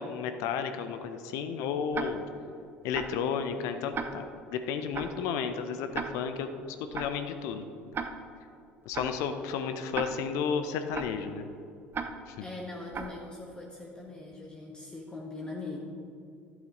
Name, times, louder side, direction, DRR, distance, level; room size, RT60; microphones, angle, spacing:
voice 1, 0.0-2.2 2.8-6.5 6.9-7.7 8.9-11.5 12.3-12.4, left 6 dB, 60° left, 8 dB, 0.7 m, -32 dB
Tick-tock, 1.9-2.1 2.9-3.1 3.9-4.1 4.9-5.1 5.9-6.1 6.9-7.1 7.9-8.1 8.9-9.1 9.9-10.1 10.9-11.1 11.9-12.1 12.9-13.1, right 6 dB, 35° right, 0.8 m, -34 dB
voice 2, 12.4-15.8, left 2 dB, 15° left, -1 dB, 1.4 m, -41 dB
12.0 x 8.3 x 3.9 m, 2.5 s
figure-of-eight pair, 60°, 6 cm